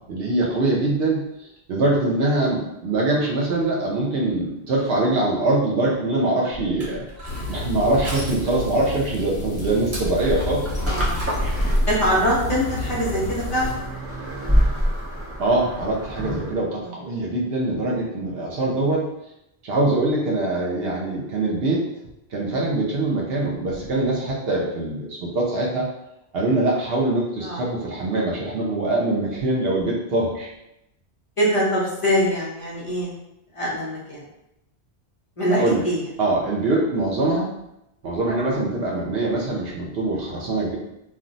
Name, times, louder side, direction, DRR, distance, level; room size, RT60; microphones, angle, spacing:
voice 1, 0.1-7.1 7.5-10.7 15.4-19.1 19.6-21.9 22.3-25.9 26.3-30.5 35.5-35.8 36.2-37.5 38.0-40.8, right 2 dB, 65° right, -3 dB, 0.8 m, -23 dB
Crushing, 6.5-11.7, equal, 35° right, 1.0 m, -36 dB
sound 1, 7.3-13.7, left 1 dB, 85° left, 0.9 m, -32 dB
sound 2, 10.2-16.6, equal, 20° right, 0.4 m, -26 dB
voice 2, 11.9-13.8 16.8-16.9 27.4-27.6 31.4-33.2 33.5-34.2 35.4-36.0 38.5-38.7, equal, 35° left, -6 dB, 0.8 m, -23 dB
2.5 x 2.1 x 3.8 m, 0.85 s
omnidirectional pair, 1.1 m